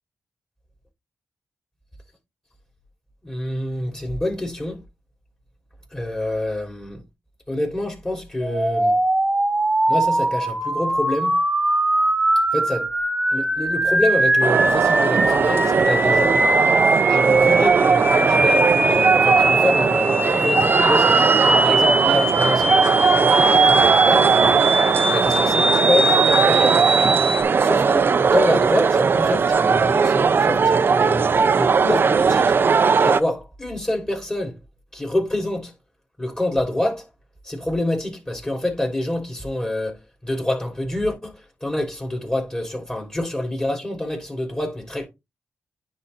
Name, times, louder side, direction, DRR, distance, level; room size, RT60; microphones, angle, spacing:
voice 1, 3.2-4.8 5.9-7.0 7.5-9.0 9.9-11.4 12.5-12.9 13.3-16.4 17.1-21.3 21.6-24.3 25.1-27.0 27.6-31.3 31.5-32.5 33.0-34.6 34.9-35.7 36.2-37.0 37.4-45.1, left 1 dB, 15° left, 3.2 m, -26 dB
sound 1, 8.4-27.4, right 1 dB, 15° right, 1.4 m, -21 dB
sound 2, 14.4-33.2, right 5 dB, 50° right, 0.6 m, -18 dB
9.8 x 4.0 x 4.0 m
cardioid pair, 85°, 5 cm